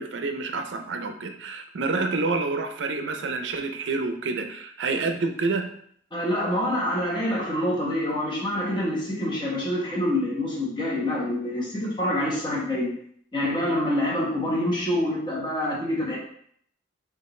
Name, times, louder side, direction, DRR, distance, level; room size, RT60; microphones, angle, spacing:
voice 1, 0.0-5.7, right 3 dB, 80° right, 6 dB, 0.5 m, -28 dB
voice 2, 6.1-12.9 13.3-16.2, left 1 dB, 25° left, -4 dB, 1.1 m, -26 dB
5.4 x 2.4 x 3.1 m, 0.65 s
head